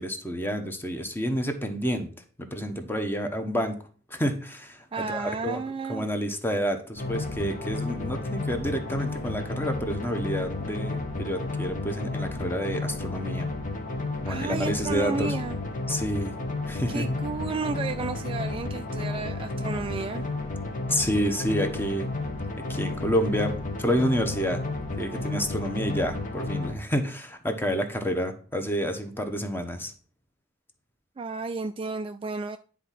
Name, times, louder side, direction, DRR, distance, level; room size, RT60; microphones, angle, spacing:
voice 1, 0.0-2.1 2.4-3.8 4.1-5.6 5.9-13.5 14.2-15.3 15.9-16.4 16.7-17.0 20.9-22.1 22.7-24.6 25.0-29.9, equal, 10° left, 6 dB, 1.0 m, -29 dB
voice 2, 4.9-6.1 14.3-15.6 16.9-20.3 31.2-32.6, right 4 dB, 25° right, 9 dB, 0.3 m, -32 dB
sound 1, 7.0-26.7, left 2 dB, 40° left, 1.2 m, -32 dB
9.9 x 3.6 x 5.9 m, 0.40 s
head